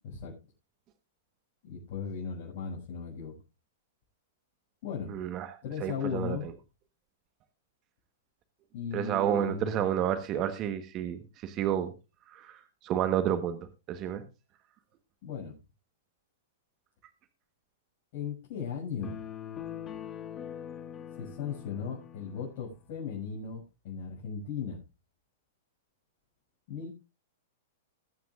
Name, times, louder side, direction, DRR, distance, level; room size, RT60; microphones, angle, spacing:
voice 1, 1.6-3.3 4.8-5.2 5.6-6.5 8.7-9.7 15.2-15.6 18.1-19.2 21.2-24.8 26.7-26.9, left 6 dB, 55° left, -5 dB, 6.6 m, -37 dB
voice 2, 5.1-6.4 8.9-11.9 12.3-13.6 13.9-14.2, right 10 dB, 35° right, 11 dB, 1.3 m, -30 dB
sound 1, 19.0-22.6, left 9 dB, 25° left, 1.8 m, -42 dB
21.0 x 9.4 x 2.5 m, 0.28 s
hypercardioid pair, 110°, 0 cm